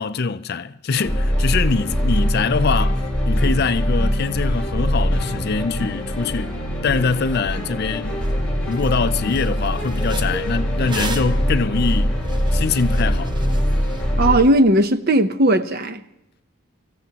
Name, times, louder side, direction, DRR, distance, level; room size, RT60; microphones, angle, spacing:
voice 1, 0.0-6.6 6.8-8.2 8.7-12.2 12.5-13.4, left 4 dB, 50° left, 0.4 m, -23 dB
sound 1, 0.9-14.4, equal, 5° left, 4.0 m, -22 dB
sound 2, 8.3-8.4 8.7-8.9 9.3-14.0, right 3 dB, 20° right, 0.9 m, -36 dB
voice 2, 14.2-16.0, right 1 dB, 45° right, 0.8 m, -17 dB
24.5 x 15.0 x 2.9 m
head